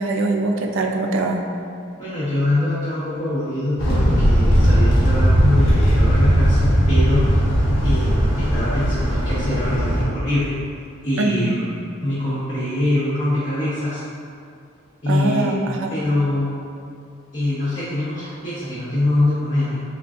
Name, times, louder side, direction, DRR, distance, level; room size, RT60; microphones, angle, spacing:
voice 1, 0.0-1.5 11.2-11.6 15.1-15.9, right 2 dB, 70° right, 3 dB, 0.4 m, -22 dB
voice 2, 2.0-7.4 7.8-10.5 11.0-11.7 12.0-14.0 15.0-15.6 15.9-16.6 17.3-19.8, left 1 dB, 35° left, -12 dB, 0.7 m, -23 dB
sound 1, 3.8-10.0, equal, 70° left, 1.0 m, -17 dB
3.7 x 3.3 x 2.4 m, 2.4 s
head